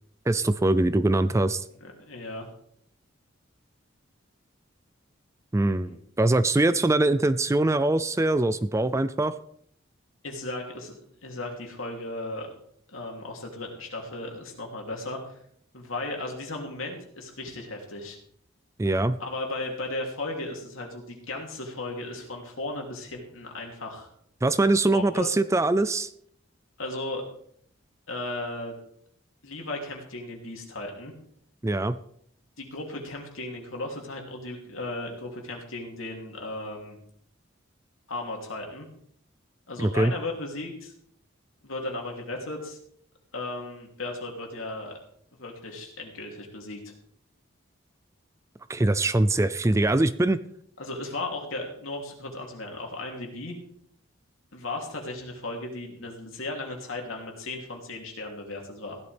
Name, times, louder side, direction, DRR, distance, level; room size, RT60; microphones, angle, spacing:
voice 1, 0.3-1.6 5.5-9.3 18.8-19.2 24.4-26.1 31.6-32.0 39.8-40.1 48.7-50.4, right 2 dB, 15° right, 14 dB, 0.4 m, -23 dB
voice 2, 1.8-2.5 5.7-6.0 10.2-12.5 12.9-15.2 15.7-18.2 19.2-24.1 24.9-25.3 26.8-27.2 28.1-28.8 29.4-31.1 32.6-37.0 38.1-38.9 39.7-40.9 41.6-42.8 43.3-45.0 45.3-46.9 50.8-53.6 54.5-59.0, left 2 dB, 85° left, 1 dB, 3.0 m, -36 dB
16.0 x 11.5 x 3.5 m, 0.67 s
head